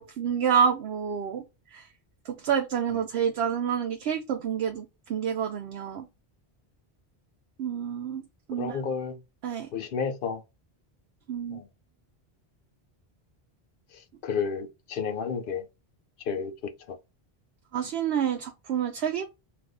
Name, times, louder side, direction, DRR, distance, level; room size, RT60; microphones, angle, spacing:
voice 1, 0.0-1.4 1.7-1.9 2.2-6.1 7.6-8.2 8.5-8.8 9.4-9.7 11.3-11.6 17.7-19.2, right 8 dB, 80° right, 0.8 m, -28 dB
voice 2, 8.6-9.2 9.7-10.4 11.5-11.6 14.2-15.6 16.3-17.0, left 6 dB, 60° left, 0.7 m, -31 dB
2.6 x 2.5 x 3.4 m
omnidirectional pair, 1.0 m